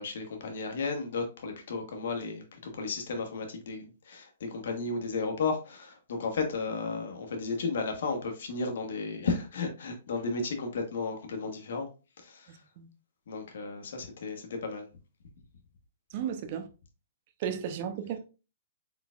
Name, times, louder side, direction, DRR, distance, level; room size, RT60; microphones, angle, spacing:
voice 1, 0.0-11.9 12.2-12.6 13.3-14.9, left 4 dB, 70° left, 1.2 m, -34 dB
voice 2, 12.5-12.9 16.1-16.7 17.4-18.2, right 8 dB, 45° right, 0.6 m, -34 dB
4.2 x 3.9 x 2.4 m
hypercardioid pair, 145°, 0 cm